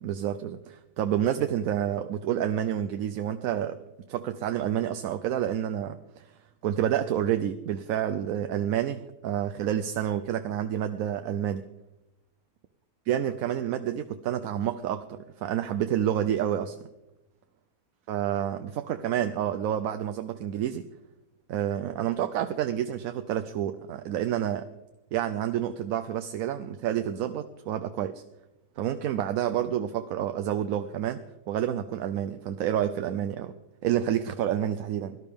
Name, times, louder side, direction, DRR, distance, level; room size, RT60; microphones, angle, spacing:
voice 1, 0.0-3.8 4.1-11.6 13.1-16.8 18.1-20.9 21.5-24.7 25.1-28.2 28.8-33.6 33.8-35.2, right 10 dB, 75° right, 8 dB, 1.0 m, -29 dB
17.5 x 12.0 x 3.5 m, 0.97 s
omnidirectional pair, 1.5 m